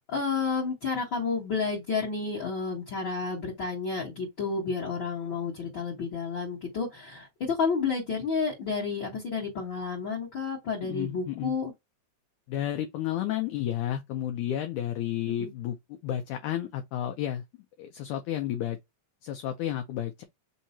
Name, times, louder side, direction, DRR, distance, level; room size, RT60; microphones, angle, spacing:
voice 1, 0.0-11.7 15.4-15.5, left 5 dB, 40° left, 1.9 m, -31 dB
voice 2, 10.8-11.5 12.5-17.4 17.8-18.8 19.2-20.2, left 11 dB, 80° left, 1.8 m, -32 dB
5.5 x 2.8 x 2.6 m
omnidirectional pair, 4.1 m